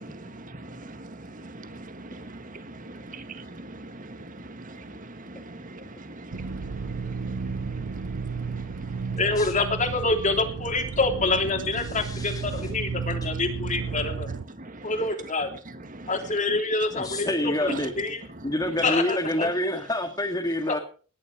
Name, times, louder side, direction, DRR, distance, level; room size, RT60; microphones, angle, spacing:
voice 1, 0.0-0.4 1.6-1.7 2.1-2.2 3.1-3.5 3.7-4.2 4.6-4.7 5.3-5.8 6.1-6.4 8.9-9.0 14.3-14.4 16.2-16.3 17.7-17.9 18.8-19.0, right 2 dB, 40° right, 10 dB, 1.7 m, -39 dB
sound 1, 6.3-14.4, right 5 dB, 90° right, 0.6 m, -33 dB
voice 2, 9.2-14.3 14.8-15.5 16.1-18.2 18.8-19.5 20.7-20.8, left 3 dB, 35° left, 4 dB, 3.2 m, -26 dB
voice 3, 11.8-12.7 16.9-17.9 18.4-20.8, left 1 dB, 20° left, 2 dB, 1.9 m, -28 dB
19.5 x 11.0 x 5.0 m, 0.40 s
head